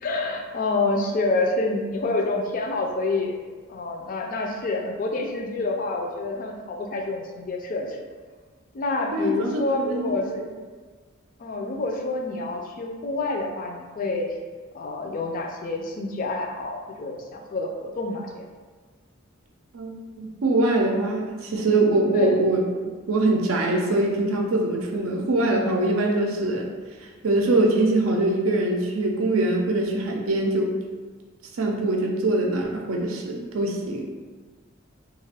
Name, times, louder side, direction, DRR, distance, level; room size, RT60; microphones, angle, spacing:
voice 1, 0.0-3.4 3.7-8.0 8.7-10.3 11.4-14.3 14.7-18.5 22.1-22.4, left 2 dB, 40° left, 2 dB, 0.3 m, -27 dB
voice 2, 9.1-10.1 19.7-22.6 23.1-26.7 27.2-30.7 31.6-34.0, right 2 dB, 90° right, 1 dB, 0.5 m, -23 dB
2.4 x 2.3 x 3.3 m, 1.4 s
head